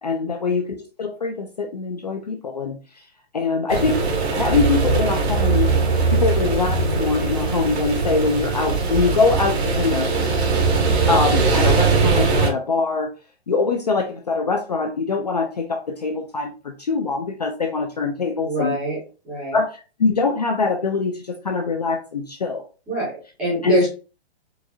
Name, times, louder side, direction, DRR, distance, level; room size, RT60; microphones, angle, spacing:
voice 1, 0.0-2.8 3.3-4.0 4.3-5.7 6.1-10.1 11.1-13.1 13.5-18.8 19.5-19.7 20.0-22.6 23.6-23.9, left 4 dB, 40° left, 4 dB, 0.4 m, -23 dB
sound 1, 3.7-12.5, right 4 dB, 80° right, 1.3 m, -20 dB
voice 2, 18.4-19.0 19.2-19.6 22.9-23.9, right 1 dB, 5° right, -10 dB, 0.6 m, -24 dB
4.6 x 2.3 x 2.6 m, 0.34 s
hypercardioid pair, 180°, 32 cm